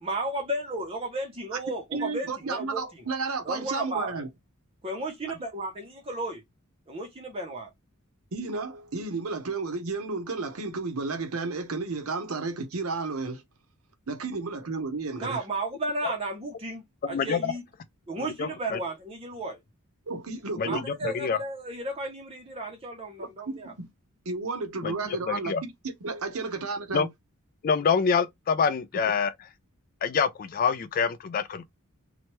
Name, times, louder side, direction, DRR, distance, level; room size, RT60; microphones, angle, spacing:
voice 1, 0.0-3.0 3.4-4.1 4.8-6.4 6.9-7.7 15.2-17.6 18.1-19.6 20.7-23.7 26.3-26.4, right 2 dB, 25° right, 0.6 m, -34 dB
voice 2, 1.9-4.3 8.3-13.4 14.1-15.4 20.1-20.8 23.5-23.9 24.3-25.7 26.0-27.1, right 3 dB, 75° right, 0.7 m, -32 dB
voice 3, 17.1-17.5 18.4-18.8 20.6-21.4 24.8-24.9 25.3-25.6 26.9-27.1 27.6-29.3 30.0-31.7, left 6 dB, 40° left, 0.3 m, -26 dB
3.0 x 2.1 x 3.0 m
head